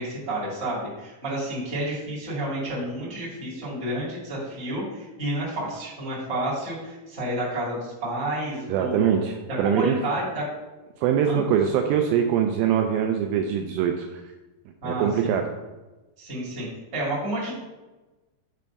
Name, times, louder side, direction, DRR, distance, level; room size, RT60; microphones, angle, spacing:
voice 1, 0.0-9.2 9.5-10.4 11.2-11.4 14.8-15.3 16.2-16.7 16.9-17.6, right 1 dB, 20° right, -7 dB, 2.0 m, -30 dB
voice 2, 8.7-10.0 11.0-14.2 14.8-15.5, right 8 dB, 80° right, 4 dB, 2.2 m, -23 dB
8.4 x 3.3 x 5.2 m, 1.1 s
omnidirectional pair, 4.4 m